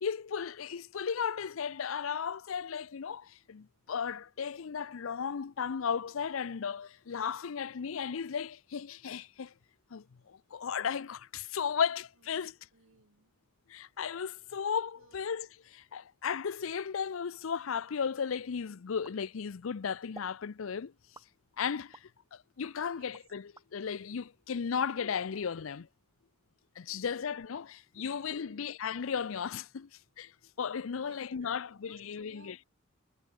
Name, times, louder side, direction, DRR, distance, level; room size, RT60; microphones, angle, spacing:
voice 1, 0.0-9.5 9.9-12.6 13.7-20.9 21.6-22.0 22.3-25.9 26.8-29.9 30.2-30.3 30.6-32.6, left 6 dB, 70° left, 0.5 m, -35 dB
voice 2, 12.7-13.3 15.0-15.2 22.9-23.1 26.9-27.1 28.0-28.6 30.9-31.5 31.9-32.7, right 4 dB, 70° right, 1.3 m, -61 dB
sound 1, 19.0-19.7 20.1-20.4 21.1-22.1 22.6-23.7, right 2 dB, 15° right, 4.8 m, -53 dB
head